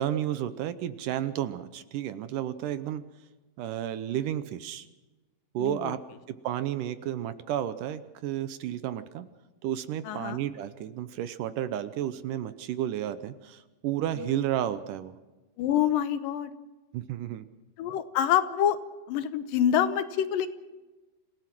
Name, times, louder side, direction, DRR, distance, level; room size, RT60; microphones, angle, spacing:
voice 1, 0.0-3.0 3.6-4.9 5.5-6.0 6.4-9.3 9.6-15.1 16.9-17.5, right 11 dB, 75° right, 12 dB, 2.2 m, -32 dB
voice 2, 5.6-6.0 10.1-10.4 14.2-14.4 15.6-16.5 17.8-18.8 19.1-20.5, left 10 dB, 75° left, 11 dB, 2.5 m, -26 dB
26.5 x 17.0 x 6.1 m, 1.2 s
omnidirectional pair, 4.1 m